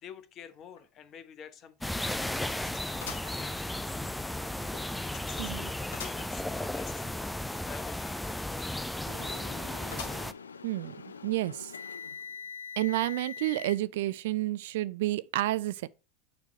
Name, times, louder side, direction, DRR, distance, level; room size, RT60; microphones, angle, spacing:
voice 1, 0.0-3.7 4.7-9.4, left 8 dB, 40° left, 0.9 m, -49 dB
sound 1, 0.8-0.9 1.3-1.4 3.0-4.1 4.6-4.7 5.9-6.3 6.8-6.9 7.0-7.1 9.9-10.5 11.1-11.2 12.2-12.3, left 6 dB, 70° left, 1.4 m, -44 dB
sound 2, 1.8-10.3, left 1 dB, 5° left, 0.4 m, -35 dB
voice 2, 5.4-5.7 10.6-11.0 11.2-11.7 12.8-15.9, right 16 dB, 70° right, 0.3 m, -30 dB
sound 3, 9.0-13.8, left 6 dB, 85° left, 0.3 m, -44 dB
6.6 x 3.2 x 5.8 m
hypercardioid pair, 80°, 0 cm